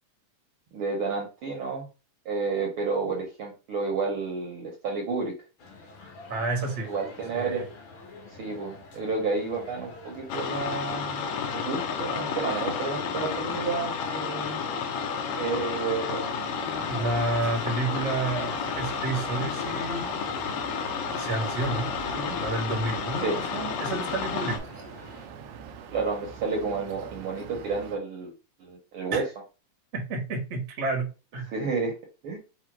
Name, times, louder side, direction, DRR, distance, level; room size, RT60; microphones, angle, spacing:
voice 1, 0.7-1.9 2.2-5.3 6.8-7.6 8.4-11.3 11.5-14.6 15.3-17.0 22.0-22.4 23.2-23.4 25.9-28.3 28.6-29.2 31.5-32.0 32.2-32.4, right 4 dB, 60° right, 0 dB, 1.4 m, -31 dB
sound 1, 5.6-25.3, left 2 dB, 50° left, 1.8 m, -47 dB
voice 2, 6.3-6.9 7.3-7.7 16.9-20.1 21.1-21.9 22.3-24.6 29.1-29.2 29.9-31.5, right 3 dB, 45° right, 1 dB, 0.9 m, -30 dB
sound 2, 10.3-24.6, left 6 dB, 75° left, 1.8 m, -31 dB
sound 3, 16.4-28.0, right 7 dB, 80° right, 1.6 m, -43 dB
5.0 x 2.2 x 4.5 m, 0.31 s
omnidirectional pair, 3.5 m